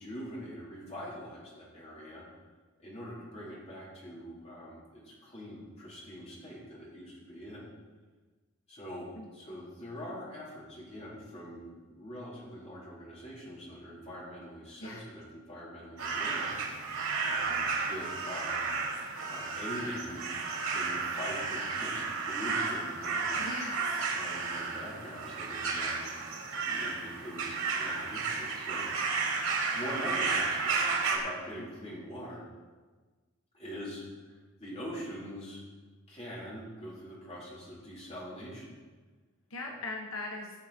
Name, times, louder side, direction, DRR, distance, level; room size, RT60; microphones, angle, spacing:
voice 1, 0.0-2.2 2.8-7.6 8.7-16.6 17.2-18.7 19.3-20.3 20.7-23.4 24.1-26.0 26.6-29.5 29.7-30.8 31.1-32.4 33.5-34.3 34.6-35.6 36.1-38.8 39.6-39.7, equal, 30° left, -6 dB, 4.0 m, -43 dB
sound 1, 16.0-31.2, right 4 dB, 85° right, 2.4 m, -33 dB
voice 2, 23.3-24.1 39.5-40.5, left 2 dB, 80° left, 0 dB, 1.1 m, -40 dB
17.5 x 6.9 x 4.4 m, 1.3 s
head